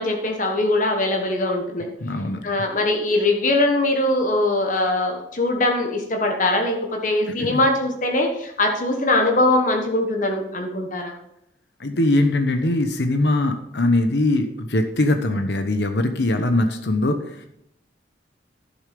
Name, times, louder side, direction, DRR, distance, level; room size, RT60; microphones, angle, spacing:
voice 1, 0.0-1.9 2.4-11.1, left 2 dB, 45° left, 2 dB, 1.3 m, -21 dB
voice 2, 2.0-2.4 7.4-7.6 11.8-17.5, left 1 dB, 65° left, 6 dB, 0.9 m, -21 dB
11.5 x 7.2 x 5.1 m, 0.78 s
head